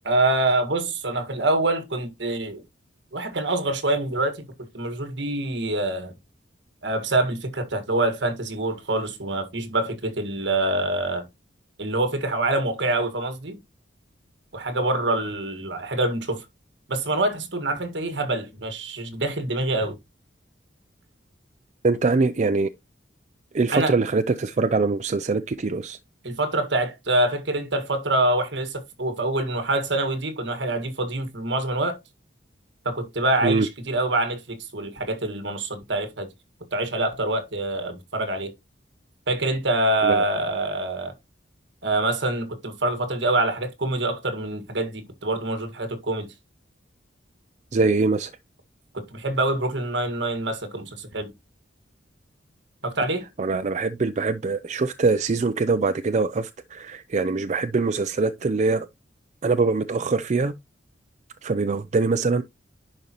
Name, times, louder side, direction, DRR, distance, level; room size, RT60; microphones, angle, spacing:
voice 1, 0.0-2.6 3.1-4.5 4.7-6.1 6.8-11.3 11.8-13.6 14.5-16.4 16.9-20.0 23.7-23.9 26.2-32.0 32.9-36.3 36.7-38.5 39.3-41.1 41.8-46.3 48.9-51.3 52.8-53.3, right 2 dB, 65° right, 1.7 m, -25 dB
voice 2, 21.8-22.7 23.5-26.0 33.4-33.7 40.0-40.2 47.7-48.3 53.4-58.9 59.4-60.5 61.4-62.4, right 3 dB, 40° right, 0.4 m, -23 dB
10.5 x 5.2 x 2.9 m
head